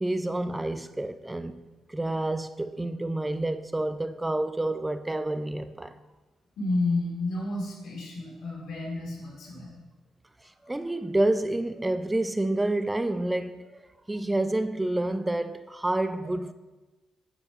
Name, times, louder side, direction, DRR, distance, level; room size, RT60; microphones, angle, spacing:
voice 1, 0.0-6.0 10.6-16.5, right 1 dB, 15° right, 0.3 m, -29 dB
voice 2, 6.6-9.7, left 2 dB, 75° left, 2.4 m, -31 dB
8.9 x 3.2 x 5.8 m
cardioid pair, 90°, 0 cm